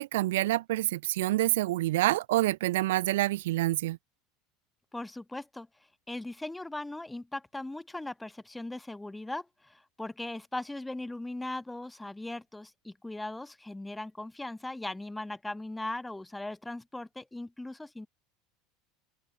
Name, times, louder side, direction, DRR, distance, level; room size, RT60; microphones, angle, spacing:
voice 1, 0.0-4.0, right 16 dB, 65° right, 0.3 m, -27 dB
voice 2, 4.9-5.7 6.1-18.1, left 2 dB, 5° left, 1.6 m, -39 dB
figure-of-eight pair, 75°, 0 cm